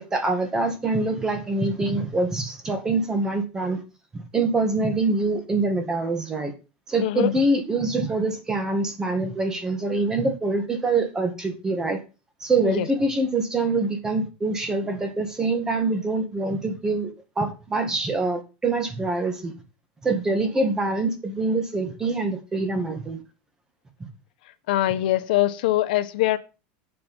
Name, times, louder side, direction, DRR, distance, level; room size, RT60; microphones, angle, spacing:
voice 1, 0.0-3.8 4.1-6.5 6.9-12.0 12.4-19.5 20.0-23.2, right 3 dB, 15° right, 7 dB, 1.9 m, -25 dB
voice 2, 24.7-26.4, left 15 dB, 80° left, 11 dB, 1.1 m, -22 dB
9.0 x 7.6 x 5.5 m, 0.31 s
supercardioid pair, 160°, 5 cm